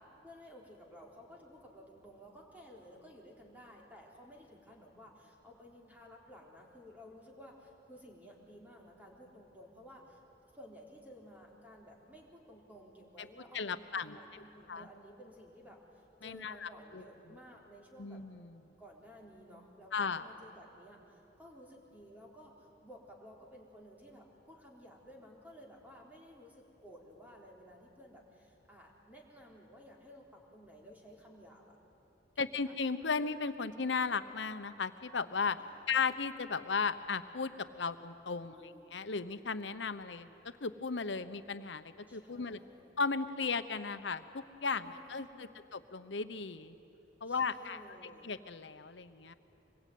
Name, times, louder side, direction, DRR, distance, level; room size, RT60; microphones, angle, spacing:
voice 1, 0.2-10.2 10.5-18.2 18.8-31.8 32.3-32.7 35.6-36.0 38.5-39.0 42.1-43.0 44.8-45.7 47.2-48.3, equal, 10° right, -2 dB, 3.9 m, -55 dB
voice 2, 13.5-14.2 14.7-14.8 16.2-17.1 18.0-18.6 19.9-20.2 32.4-35.6 35.9-40.3 40.6-42.6 43.0-46.7 47.2-47.8 48.2-49.3, left 5 dB, 90° left, 11 dB, 1.0 m, -36 dB
25.5 x 21.5 x 9.4 m, 3.0 s
head